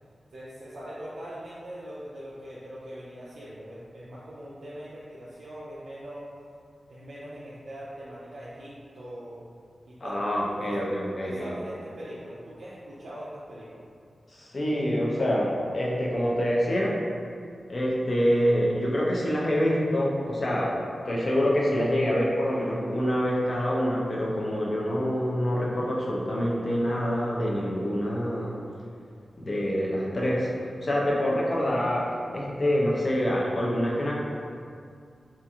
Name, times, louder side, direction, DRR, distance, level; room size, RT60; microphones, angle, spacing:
voice 1, 0.3-6.3 6.9-9.4 9.8-10.2 10.5-10.7 11.2-13.9, equal, 65° right, -9 dB, 0.4 m, -41 dB
voice 2, 10.0-11.5 14.3-17.0 17.7-28.6 29.4-30.5 30.8-34.1, equal, 40° left, -4 dB, 0.4 m, -26 dB
2.8 x 2.4 x 2.3 m, 2.3 s
wide cardioid pair, 155°, 0 cm